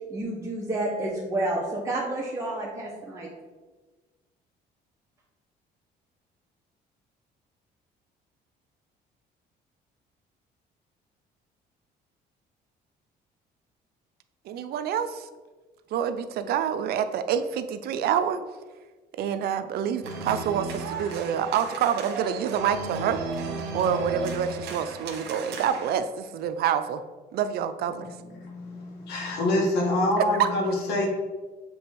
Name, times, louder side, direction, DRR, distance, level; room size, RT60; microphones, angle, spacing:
voice 1, 0.1-3.3, right 2 dB, 15° right, -4 dB, 1.0 m, -30 dB
voice 2, 14.5-15.3 15.9-18.4 19.2-27.0 27.3-28.1 30.2-30.5, right 8 dB, 70° right, 10 dB, 0.5 m, -27 dB
sound 1, 20.0-25.9, right 4 dB, 85° right, 1.1 m, -35 dB
voice 3, 28.0-31.1, left 1 dB, 75° left, -1 dB, 1.8 m, -26 dB
7.0 x 3.4 x 4.5 m, 1.3 s
cardioid pair, 110°, 17 cm